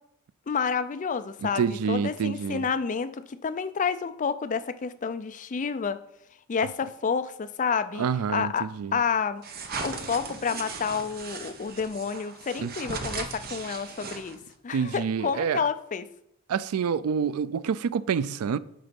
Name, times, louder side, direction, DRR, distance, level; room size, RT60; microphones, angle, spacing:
voice 1, 0.5-1.6 1.9-6.0 6.5-8.7 8.9-9.4 9.8-14.4 14.6-16.1, left 6 dB, 35° left, 0.4 m, -29 dB
voice 2, 1.4-2.6 8.0-9.0 12.6-12.7 14.7-15.6 16.5-18.6, right 6 dB, 80° right, 0.4 m, -27 dB
sound 1, 9.4-14.5, right 4 dB, 45° right, 0.9 m, -37 dB
10.5 x 3.9 x 5.2 m
head